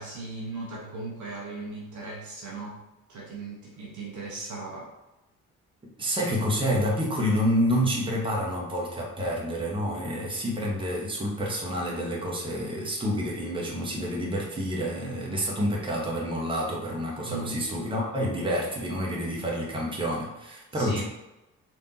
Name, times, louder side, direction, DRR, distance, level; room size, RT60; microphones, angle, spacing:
voice 1, 0.0-2.8 3.1-4.9 17.2-17.6 20.7-21.0, right 3 dB, 45° right, -3 dB, 0.9 m, -37 dB
voice 2, 6.0-21.0, equal, 10° right, -3 dB, 0.9 m, -28 dB
3.4 x 2.6 x 2.9 m, 0.96 s
figure-of-eight pair, 40°, 43 cm